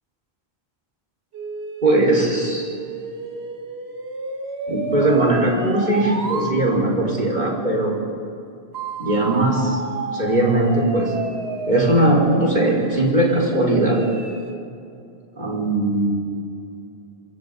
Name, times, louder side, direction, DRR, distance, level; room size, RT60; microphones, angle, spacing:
sound 1, 1.3-6.6 8.7-14.6, right 3 dB, 70° right, 1.7 m, -31 dB
voice 1, 1.8-2.7 4.7-7.9 9.0-9.8 10.1-11.1 11.7-14.0 15.4-16.2, right 1 dB, 45° right, -3 dB, 5.2 m, -19 dB
27.0 x 25.0 x 4.1 m, 2.7 s
omnidirectional pair, 1.1 m